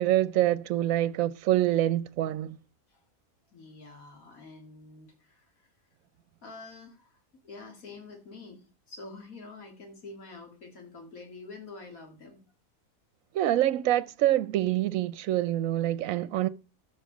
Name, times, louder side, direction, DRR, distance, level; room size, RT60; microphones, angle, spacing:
voice 1, 0.0-2.6 13.3-16.5, right 13 dB, 75° right, 1.0 m, -26 dB
voice 2, 3.5-5.4 6.4-7.2 7.4-8.6 8.9-12.4, left 3 dB, 75° left, 2.6 m, -46 dB
13.5 x 5.1 x 4.9 m
omnidirectional pair, 1.5 m